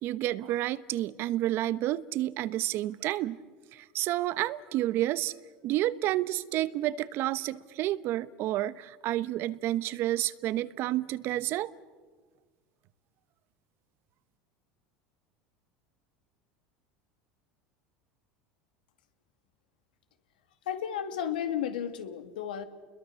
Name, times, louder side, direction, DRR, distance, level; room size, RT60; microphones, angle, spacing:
voice 1, 0.0-3.4 3.7-5.3 5.6-11.7, right 14 dB, 55° right, 1.0 m, -30 dB
voice 2, 20.7-22.7, left 9 dB, 90° left, 2.3 m, -33 dB
29.0 x 22.0 x 7.1 m
supercardioid pair, 100°, 5 cm